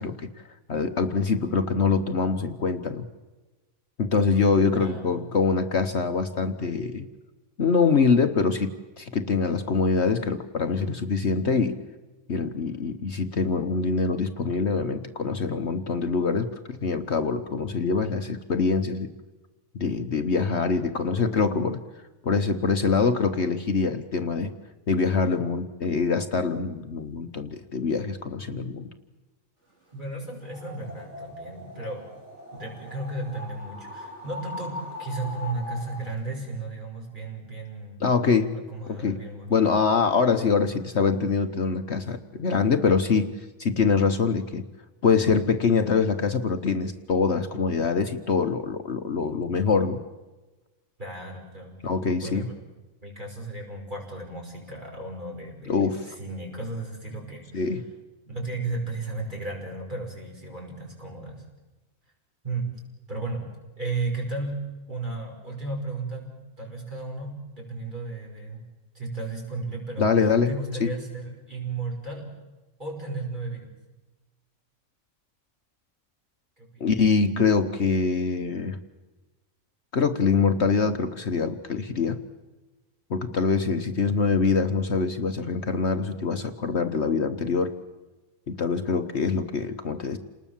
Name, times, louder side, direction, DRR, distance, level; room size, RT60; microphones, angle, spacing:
voice 1, 0.0-3.0 4.0-7.1 7.6-11.8 12.3-19.1 19.7-21.8 22.2-24.5 24.9-28.9 38.0-38.6 38.9-39.2 39.5-44.6 45.0-50.0 51.8-52.5 55.7-56.1 57.5-57.8 70.0-70.5 70.8-70.9 76.8-78.8 79.9-82.2 83.1-87.7 88.5-90.2, left 5 dB, 55° left, 8 dB, 1.3 m, -24 dB
voice 2, 4.8-5.3 29.9-32.1 32.5-38.0 38.5-39.8 51.0-52.0 52.2-52.6 53.0-57.7 58.3-61.4 62.4-62.8 63.1-63.5 63.8-68.7 68.9-72.4 72.8-73.7 76.6-76.9, right 3 dB, 35° right, 0 dB, 5.9 m, -34 dB
sound 1, 30.4-36.2, left 2 dB, 60° right, 5.3 m, -40 dB
29.0 x 20.0 x 7.3 m, 1.2 s
omnidirectional pair, 1.4 m